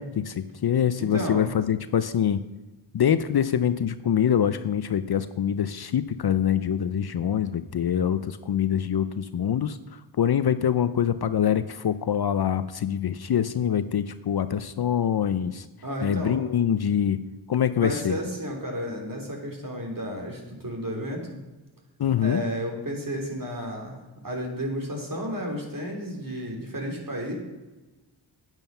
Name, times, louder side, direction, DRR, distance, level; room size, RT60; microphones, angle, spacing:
voice 1, 0.0-2.4 2.9-9.8 10.2-15.7 16.0-17.2 17.5-18.2 22.0-22.4, left 9 dB, 50° left, 13 dB, 0.6 m, -24 dB
voice 2, 1.0-1.5 15.8-16.4 17.8-21.3 22.2-27.4, equal, 40° right, 0 dB, 3.3 m, -32 dB
9.1 x 9.0 x 5.6 m, 1.1 s
cardioid pair, 55°, 49 cm